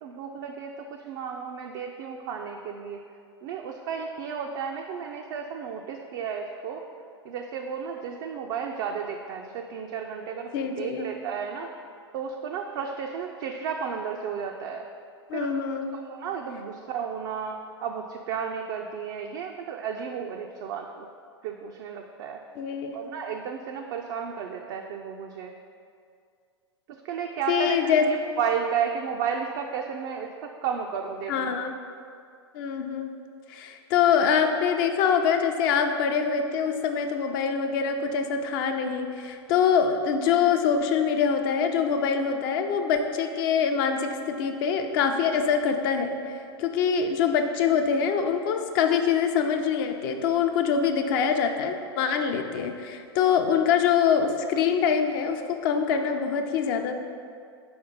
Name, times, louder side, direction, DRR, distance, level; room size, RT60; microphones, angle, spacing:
voice 1, 0.0-3.0 3.4-6.9 7.2-10.5 10.8-11.7 12.1-14.9 15.3-15.5 15.9-21.1 21.4-22.4 22.9-25.5 27.0-31.6 55.9-56.0, right 7 dB, 50° right, 1 dB, 0.5 m, -33 dB
voice 2, 10.5-11.1 15.3-15.9 22.6-23.0 27.5-28.1 31.3-31.7 32.5-33.1 33.5-56.9, left 7 dB, 50° left, 5 dB, 0.6 m, -24 dB
4.9 x 4.3 x 5.2 m, 2.3 s
hypercardioid pair, 100°, 15 cm